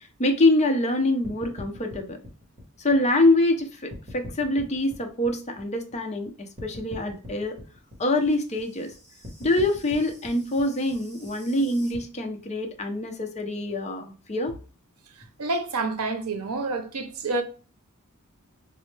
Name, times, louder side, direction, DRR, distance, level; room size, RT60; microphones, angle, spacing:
voice 1, 0.2-2.2 2.8-6.3 6.6-7.6 8.0-8.9 9.4-14.5, left 2 dB, 30° left, 0.6 m, -25 dB
sound 1, 1.2-3.6 3.9-6.3 6.6-12.0, left 1 dB, 30° right, 1.2 m, -43 dB
voice 2, 15.4-17.4, right 3 dB, 75° right, 0.6 m, -28 dB
4.1 x 2.0 x 3.2 m
head